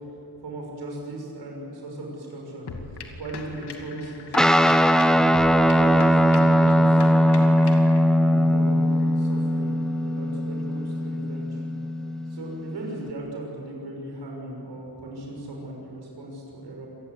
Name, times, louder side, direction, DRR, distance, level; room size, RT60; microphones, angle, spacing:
voice 1, 0.4-2.7 3.2-5.3 5.6-7.6 8.2-9.7 10.0-11.6 12.3-16.9, right 1 dB, 85° right, -1 dB, 6.5 m, -37 dB
sound 1, 2.7-8.0, left 4 dB, 75° left, 2.6 m, -39 dB
Guitar, 4.3-13.1, equal, ahead, 0.8 m, -20 dB
27.0 x 19.0 x 8.4 m, 2.9 s
wide cardioid pair, 125°, 40 cm